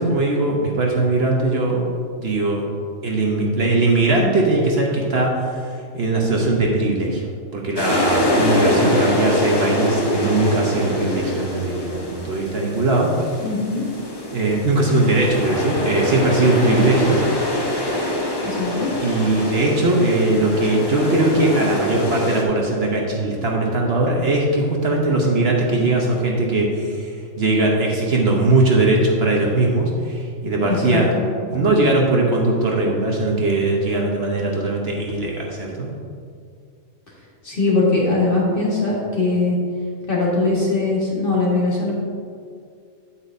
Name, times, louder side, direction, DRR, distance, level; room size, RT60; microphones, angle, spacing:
voice 1, 0.0-1.8 2.2-2.6 3.0-5.6 5.9-7.2 7.5-13.1 14.3-17.2 19.0-31.1 31.5-35.9, right 2 dB, 55° right, -1 dB, 1.1 m, -20 dB
sound 1, 7.8-22.4, left 1 dB, 20° left, 0.8 m, -24 dB
voice 2, 13.4-13.8 18.4-18.9 30.7-31.1 37.4-39.6 40.1-41.9, left 3 dB, 45° left, -5 dB, 1.8 m, -21 dB
8.8 x 8.2 x 2.6 m, 2.2 s
omnidirectional pair, 1.4 m